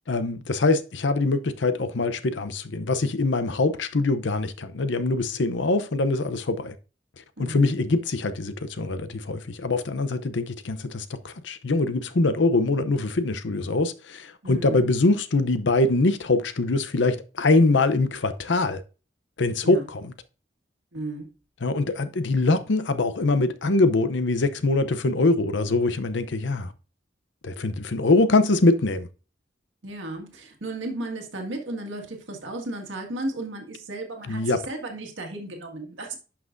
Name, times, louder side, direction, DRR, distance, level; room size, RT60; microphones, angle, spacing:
voice 1, 0.1-6.7 7.4-18.8 19.4-20.1 21.6-26.7 27.4-29.1 34.3-34.6, left 2 dB, 75° left, 0.7 m, -23 dB
voice 2, 14.4-14.9 19.6-19.9 20.9-21.3 29.8-36.1, right 2 dB, 90° right, 1.8 m, -34 dB
11.0 x 5.9 x 2.6 m
head